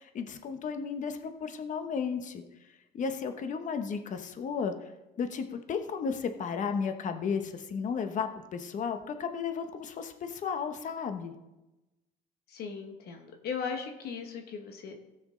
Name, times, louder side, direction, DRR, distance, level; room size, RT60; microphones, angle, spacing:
voice 1, 0.0-2.4 2.9-4.7 5.2-11.3, left 6 dB, 50° left, 7 dB, 1.1 m, -34 dB
voice 2, 12.5-15.0, left 6 dB, 70° left, 4 dB, 1.3 m, -38 dB
17.0 x 6.2 x 3.8 m, 1.0 s
cardioid pair, 110°, 17 cm